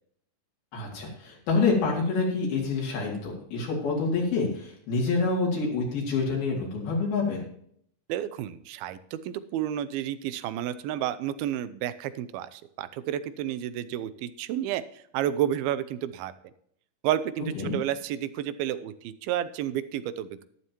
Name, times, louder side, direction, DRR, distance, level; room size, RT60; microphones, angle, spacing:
voice 1, 0.7-7.4 17.5-17.7, left 4 dB, 80° left, -2 dB, 4.5 m, -27 dB
voice 2, 8.1-16.3 17.0-20.4, right 11 dB, 85° right, 14 dB, 2.6 m, -31 dB
12.5 x 11.5 x 3.0 m, 0.65 s
omnidirectional pair, 4.3 m